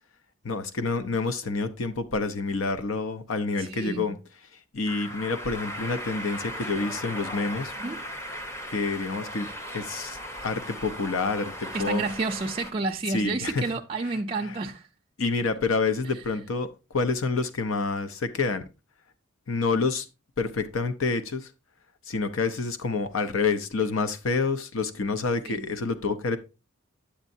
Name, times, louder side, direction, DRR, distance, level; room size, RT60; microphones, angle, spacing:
voice 1, 0.4-4.2 4.7-7.7 8.7-12.0 13.1-13.6 14.5-14.6 15.2-16.7 16.9-18.6 19.5-20.1 20.4-21.5 22.1-26.4, left 4 dB, 80° left, 0.8 m, -28 dB
voice 2, 3.6-4.2 7.8-8.0 11.7-14.9 16.1-16.2 25.4-25.6, right 3 dB, 25° right, 0.4 m, -30 dB
sound 1, 4.9-12.7, equal, 15° left, 0.8 m, -37 dB
8.8 x 8.1 x 2.7 m
head